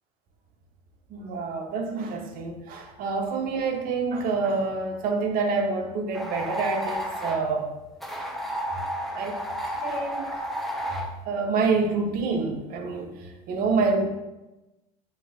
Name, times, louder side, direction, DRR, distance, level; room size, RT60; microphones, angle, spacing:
voice 1, 1.1-7.7 9.1-9.4 9.6-10.2 11.3-14.1, right 4 dB, 50° right, 2 dB, 0.8 m, -27 dB
sound 1, 6.1-7.4 8.0-11.1, equal, ahead, 0.5 m, -32 dB
6.6 x 2.4 x 2.4 m, 1.0 s
hypercardioid pair, 80°, 19 cm